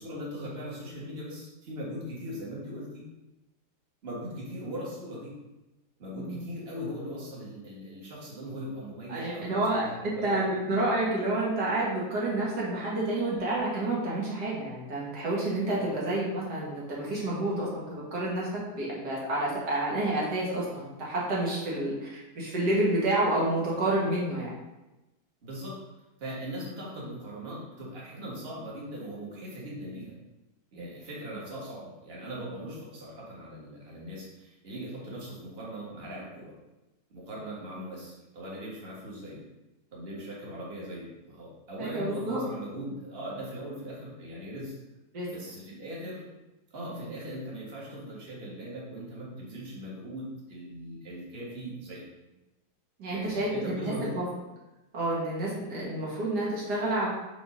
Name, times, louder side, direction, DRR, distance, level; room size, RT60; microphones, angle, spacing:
voice 1, 0.0-3.1 4.0-5.3 6.0-10.6 25.4-25.8 26.2-30.1 30.7-36.5 37.1-39.4 39.9-44.7 45.3-46.2 46.7-52.0 53.1-54.2, equal, 40° right, -5 dB, 1.8 m, -40 dB
voice 2, 9.1-24.5 30.7-30.9 41.8-42.4 45.1-45.3 46.9-47.0 53.0-53.5 54.2-54.3 54.9-57.1, right 1 dB, 85° right, -5 dB, 2.3 m, -29 dB
6.1 x 3.8 x 5.2 m, 1.0 s
omnidirectional pair, 1.7 m